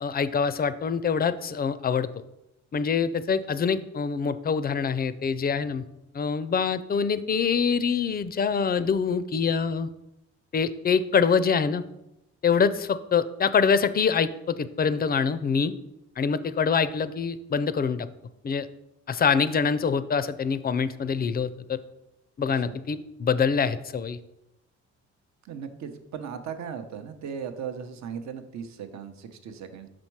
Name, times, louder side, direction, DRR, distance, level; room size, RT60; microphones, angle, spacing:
voice 1, 0.0-2.1 2.7-5.8 6.1-9.9 10.5-11.8 12.4-15.7 16.2-18.1 18.4-18.7 19.1-21.8 22.4-24.2, left 6 dB, 30° left, 14 dB, 0.4 m, -25 dB
voice 2, 25.4-29.9, right 7 dB, 65° right, 8 dB, 0.8 m, -37 dB
6.2 x 4.3 x 4.6 m, 0.89 s
cardioid pair, 90°, 30 cm